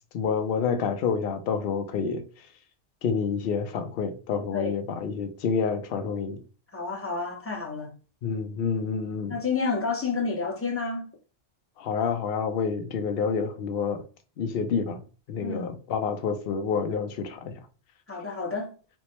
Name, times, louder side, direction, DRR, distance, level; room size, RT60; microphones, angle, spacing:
voice 1, 0.1-2.2 3.0-6.4 8.2-9.4 11.8-14.0 14.4-15.0 15.3-17.5, left 6 dB, 60° left, 0.7 m, -28 dB
voice 2, 6.7-7.9 9.3-11.1 15.4-15.7 18.1-18.7, left 4 dB, 15° left, 0.5 m, -30 dB
4.4 x 2.0 x 2.9 m
omnidirectional pair, 1.2 m